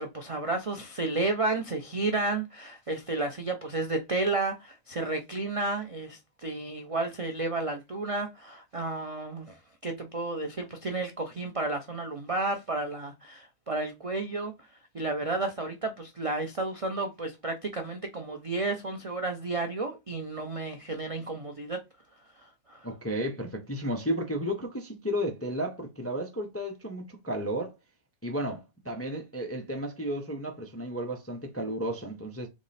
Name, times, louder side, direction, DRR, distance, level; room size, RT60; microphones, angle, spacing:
voice 1, 0.0-14.5 14.9-21.8 22.4-22.9, right 2 dB, 60° right, 0.3 m, -32 dB
voice 2, 22.8-27.7 28.2-32.5, equal, 20° left, 0.3 m, -33 dB
3.6 x 3.1 x 4.1 m
omnidirectional pair, 1.5 m